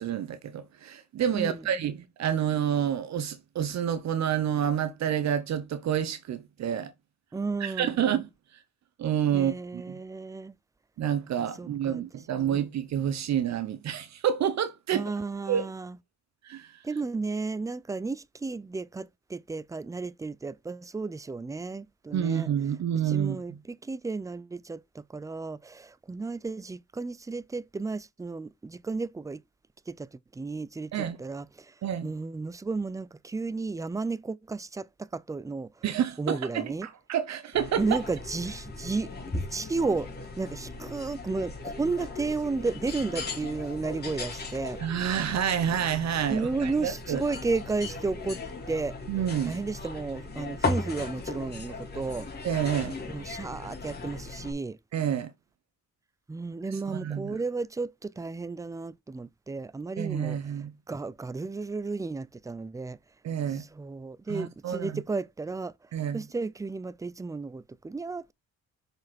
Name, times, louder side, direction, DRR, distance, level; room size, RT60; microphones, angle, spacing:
voice 1, 0.0-6.9 7.6-8.3 9.0-10.0 11.0-15.1 15.5-15.7 16.4-16.8 22.1-23.4 30.9-31.2 31.8-32.1 35.8-38.0 44.8-47.2 49.1-49.6 52.4-53.0 54.9-55.3 56.7-57.4 60.0-60.7 63.2-63.6 64.3-65.0 65.9-66.2, right 9 dB, 65° right, 0.9 m, -29 dB
voice 2, 1.3-1.7 7.3-7.9 9.3-10.6 11.6-12.0 12.3-12.6 14.9-16.0 16.8-22.5 23.1-29.4 29.9-31.7 32.0-35.7 36.2-36.9 37.8-40.1 40.4-44.8 46.3-48.4 48.7-49.0 49.4-52.3 53.1-54.8 56.3-60.4 60.9-63.0 63.6-65.7 66.1-68.3, right 3 dB, 10° right, 0.4 m, -33 dB
sound 1, 37.5-54.5, left 3 dB, 35° left, 3.3 m, -37 dB
6.3 x 5.1 x 4.2 m
cardioid pair, 90°, 30 cm